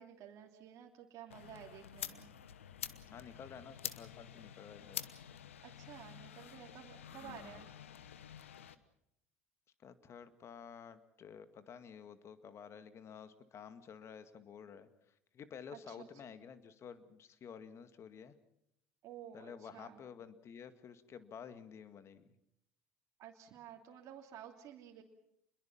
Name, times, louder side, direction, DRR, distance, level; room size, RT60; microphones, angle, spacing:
voice 1, 0.0-2.3 5.6-7.7 15.7-16.1 19.0-20.0 23.2-25.0, right 10 dB, 50° right, 1 dB, 2.9 m, -52 dB
sound 1, 1.3-8.8, left 9 dB, 85° left, 1.1 m, -48 dB
voice 2, 3.1-5.1 7.2-7.6 9.8-18.4 19.3-22.4, left 7 dB, 40° left, 11 dB, 2.0 m, -52 dB
27.5 x 22.0 x 5.9 m, 0.77 s
hypercardioid pair, 75°, 7 cm